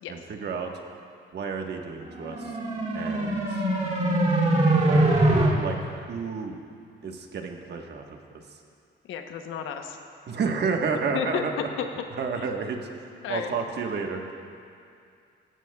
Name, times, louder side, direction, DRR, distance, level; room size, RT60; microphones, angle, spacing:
voice 1, 0.1-0.7 1.3-2.5 2.9-3.6 4.8-6.6 7.0-8.2 10.3-11.5 12.2-12.8 13.3-14.2, right 5 dB, 55° right, 3 dB, 1.3 m, -31 dB
sound 1, 2.1-5.5, right 2 dB, 35° right, 2.6 m, -23 dB
voice 2, 9.1-10.0 11.1-11.9 12.4-12.5 13.2-13.5, left 8 dB, 85° left, 5 dB, 0.9 m, -32 dB
16.5 x 14.5 x 2.3 m, 2.4 s
cardioid pair, 90°, 20 cm